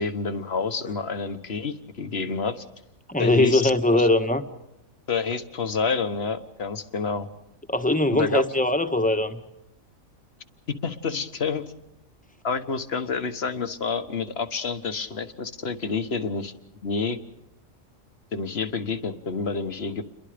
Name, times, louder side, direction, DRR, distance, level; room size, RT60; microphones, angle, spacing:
voice 1, 0.0-2.6 3.2-4.1 5.1-7.3 8.1-8.4 10.8-11.6 12.4-16.5 16.8-17.2 18.3-20.0, left 5 dB, 50° left, 10 dB, 1.5 m, -28 dB
voice 2, 3.1-4.4 7.7-9.4, left 2 dB, 5° left, 7 dB, 1.4 m, -21 dB
29.0 x 22.5 x 5.1 m, 0.87 s
omnidirectional pair, 1.4 m